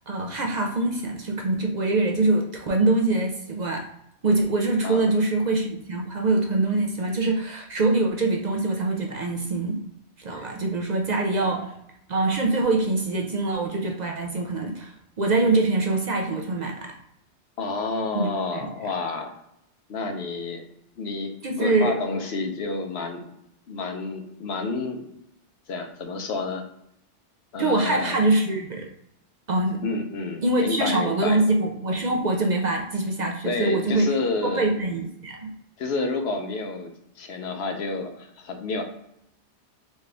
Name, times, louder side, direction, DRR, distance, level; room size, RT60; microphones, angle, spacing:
voice 1, 0.1-3.9 4.2-9.8 10.2-11.7 12.1-16.9 18.1-18.7 21.4-21.9 27.6-28.9 29.5-29.8 30.4-34.1 34.4-35.5, right 2 dB, 55° right, 1 dB, 0.5 m, -24 dB
voice 2, 17.6-19.3 19.9-20.6 21.0-23.3 23.7-25.1 25.7-26.6 27.5-28.2 29.8-31.4 33.4-34.6 35.8-38.8, left 3 dB, 65° left, 4 dB, 0.9 m, -30 dB
4.2 x 2.4 x 3.3 m, 0.77 s
omnidirectional pair, 1.2 m